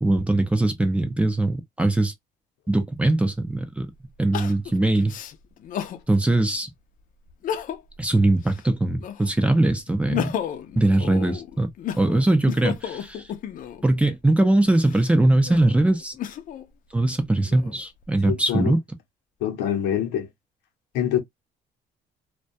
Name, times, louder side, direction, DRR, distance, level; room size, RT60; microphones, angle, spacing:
voice 1, 0.0-2.1 2.7-3.9 4.2-5.1 6.1-6.7 8.0-10.3 10.8-11.7 12.0-13.2 13.8-16.1 16.9-18.8, right 2 dB, 5° right, 0.5 m, -21 dB
Crying sobbing, 3.0-3.1 4.3-6.0 6.5-6.6 7.3-8.0 8.4-9.4 9.9-13.9 14.6-16.7 17.2-18.0, left 9 dB, 55° left, 0.5 m, -33 dB
voice 2, 18.2-18.7 19.4-20.3 20.9-21.2, left 10 dB, 90° left, 0.7 m, -25 dB
2.2 x 2.2 x 2.6 m
cardioid pair, 110°, 17 cm